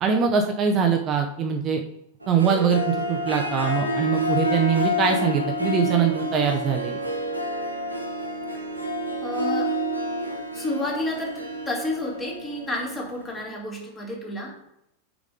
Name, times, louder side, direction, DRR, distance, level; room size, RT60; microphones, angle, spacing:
voice 1, 0.0-1.8 2.3-7.0, right 6 dB, 30° right, 4 dB, 0.8 m, -23 dB
Harp, 2.2-13.4, equal, 85° right, 1.0 m, -29 dB
voice 2, 9.2-9.8 10.3-14.6, left 1 dB, 15° left, -1 dB, 2.2 m, -31 dB
6.5 x 5.1 x 5.1 m, 0.78 s
figure-of-eight pair, 90°, 0 cm